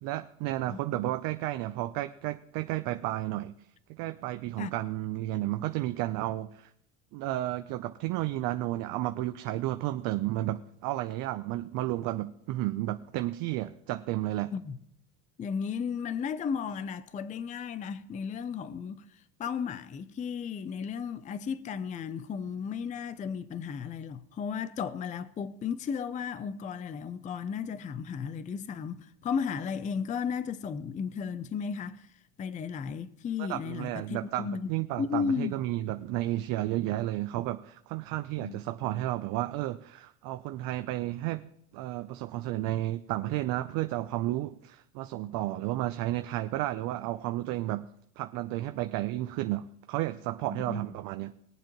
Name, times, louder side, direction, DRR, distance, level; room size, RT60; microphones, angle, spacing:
voice 1, 0.0-3.5 3.9-6.7 7.1-14.5 33.4-41.4 41.7-47.9 48.2-51.3, right 15 dB, 50° right, 0.7 m, -32 dB
voice 2, 0.7-1.1 4.6-4.7 14.5-14.8 15.4-32.1 32.4-34.7 35.0-35.6 38.4-38.6 50.5-50.8, left 6 dB, 20° left, 0.5 m, -34 dB
21.5 x 7.5 x 3.0 m
hypercardioid pair, 100°, 44 cm